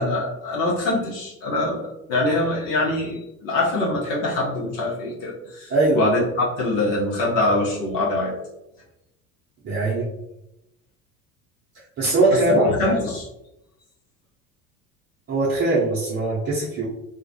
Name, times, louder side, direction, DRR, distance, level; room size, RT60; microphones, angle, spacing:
voice 1, 0.0-8.3 12.3-13.3, left 2 dB, 55° left, -4 dB, 0.8 m, -24 dB
voice 2, 5.7-6.0 9.6-10.1 12.0-12.7 15.3-16.9, right 3 dB, 25° right, -6 dB, 0.6 m, -21 dB
2.3 x 2.1 x 2.6 m, 0.88 s
hypercardioid pair, 70°, 43 cm